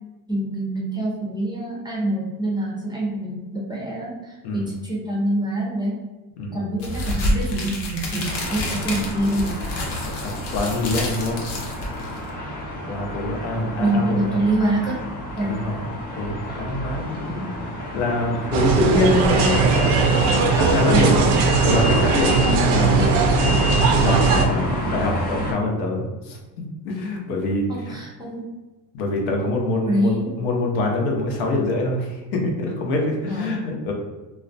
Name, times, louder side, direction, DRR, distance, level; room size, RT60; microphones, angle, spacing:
voice 1, 0.3-6.0 6.5-9.6 13.8-15.1 15.4-15.6 20.9-21.1 27.7-28.5 29.8-30.4 33.3-33.5, right 1 dB, 10° right, -5 dB, 0.4 m, -25 dB
sound 1, 6.8-12.3, left 1 dB, 55° left, 0.7 m, -28 dB
sound 2, 8.3-25.5, equal, 25° left, 0.7 m, -30 dB
voice 2, 10.2-11.4 12.9-14.4 15.4-15.9 16.2-19.9 20.5-21.2 21.6-23.2 23.9-27.9 28.9-33.9, left 2 dB, 90° left, 0 dB, 0.7 m, -25 dB
sound 3, 18.5-24.5, right 4 dB, 80° right, 0.5 m, -18 dB
2.3 x 2.1 x 2.5 m, 1.1 s
cardioid pair, 130°, 41 cm